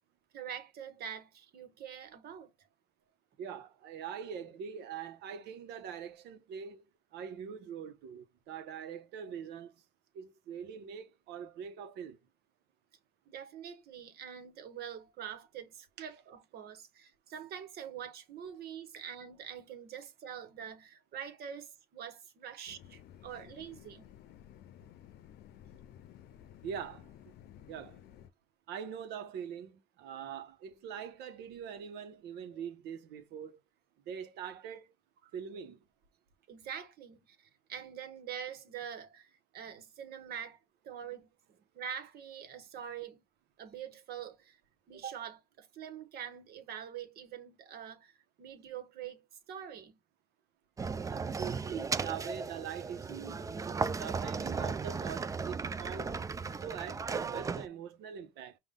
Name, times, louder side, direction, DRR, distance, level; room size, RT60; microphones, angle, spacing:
voice 1, 0.3-2.7 13.3-24.1 35.2-35.3 36.5-40.6 40.8-43.2 43.6-44.6 44.9-49.2 49.5-50.0, right 8 dB, 65° right, 1.3 m, -45 dB
voice 2, 3.4-6.8 7.1-9.7 10.1-12.2 16.0-16.1 26.6-27.1 27.7-28.0 28.7-33.6 34.1-34.9 35.3-35.8 51.1-53.4 53.9-58.6, right 8 dB, 85° right, 1.0 m, -43 dB
sound 1, 22.7-28.3, left 11 dB, 75° left, 0.6 m, -54 dB
sound 2, 50.8-57.7, right 5 dB, 20° right, 0.4 m, -36 dB
5.5 x 2.5 x 3.7 m
cardioid pair, 110°, 17 cm